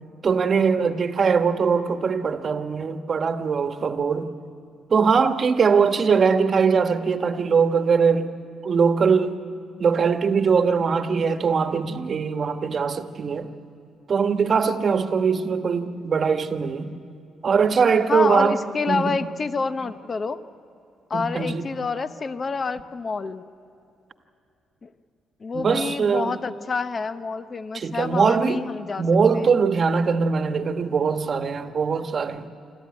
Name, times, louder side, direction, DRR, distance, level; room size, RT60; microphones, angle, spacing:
voice 1, 0.2-4.3 4.9-8.3 8.6-9.4 9.8-13.5 14.1-17.0 17.4-18.6 18.9-19.2 21.1-21.7 25.5-26.4 27.7-28.6 29.0-32.5, right 5 dB, 45° right, 7 dB, 1.3 m, -21 dB
voice 2, 18.1-20.4 21.1-23.4 24.8-24.9 25.4-29.0 29.3-29.5, left 4 dB, 35° left, 11 dB, 0.9 m, -28 dB
25.5 x 13.5 x 9.7 m, 2.7 s
cardioid pair, 90°, 0 cm